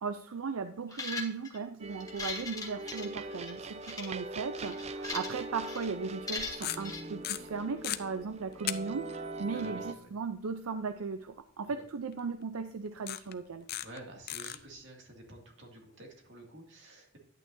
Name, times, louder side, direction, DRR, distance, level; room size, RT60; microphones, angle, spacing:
voice 1, 0.0-13.7, right 5 dB, 85° right, 10 dB, 0.5 m, -37 dB
sound 1, 0.9-1.6 2.0-3.5 3.8-4.1 4.6-5.4 5.7-5.9 6.3-7.0, left 3 dB, 15° left, 1.2 m, -39 dB
sound 2, 1.8-9.9, right 2 dB, 30° right, 0.4 m, -42 dB
sound 3, 5.3-5.4 6.5-6.9 7.2-8.0 8.7-8.8 9.1-9.2 12.1-12.2 13.1-13.3 13.7-14.0 14.3-14.6, left 13 dB, 45° left, 0.5 m, -35 dB
voice 2, 9.5-10.1 11.7-11.8 13.8-17.2, right 1 dB, 60° right, 1 dB, 2.2 m, -50 dB
10.5 x 8.9 x 2.6 m, 0.66 s
head